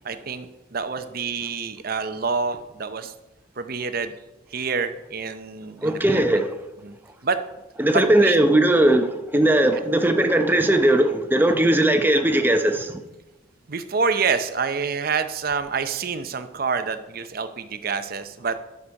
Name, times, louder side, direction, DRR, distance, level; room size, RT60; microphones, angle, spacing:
voice 1, 0.0-3.1 3.6-4.1 4.5-6.4 6.8-7.0 7.2-7.4 7.9-8.4 13.7-18.6, right 5 dB, 50° right, 0.7 m, -27 dB
voice 2, 5.8-6.6 7.8-13.0, right 1 dB, 10° right, 0.7 m, -19 dB
11.5 x 6.7 x 4.7 m
head